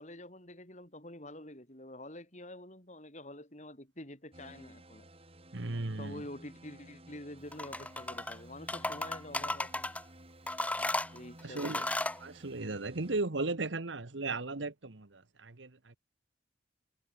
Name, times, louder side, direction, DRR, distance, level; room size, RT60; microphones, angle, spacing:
voice 1, 0.0-5.1 6.0-9.9 11.1-11.9, left 1 dB, 40° left, 7.6 m, -47 dB
sound 1, 4.3-13.2, right 1 dB, 30° right, 6.0 m, -55 dB
voice 2, 5.5-6.2 11.4-11.9 12.2-16.0, right 3 dB, 85° right, 1.4 m, -36 dB
sound 2, 7.5-8.4 8.7-10.0 10.5-12.2, left 2 dB, 10° left, 2.0 m, -34 dB
head